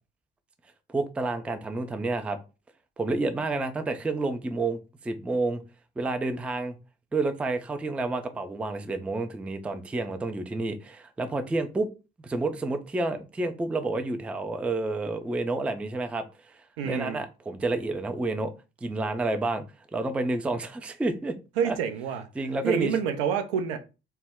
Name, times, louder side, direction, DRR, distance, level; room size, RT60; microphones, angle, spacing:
voice 1, 0.9-2.4 3.0-4.8 5.0-5.6 6.0-6.8 7.1-11.9 12.2-18.5 18.8-19.6 19.9-21.4 21.6-21.8 22.4-22.9, right 2 dB, 5° right, 0.3 m, -29 dB
voice 2, 16.8-17.2 21.6-22.3 22.6-23.8, right 7 dB, 70° right, 0.5 m, -27 dB
2.2 x 2.0 x 3.4 m
figure-of-eight pair, 50°, 30 cm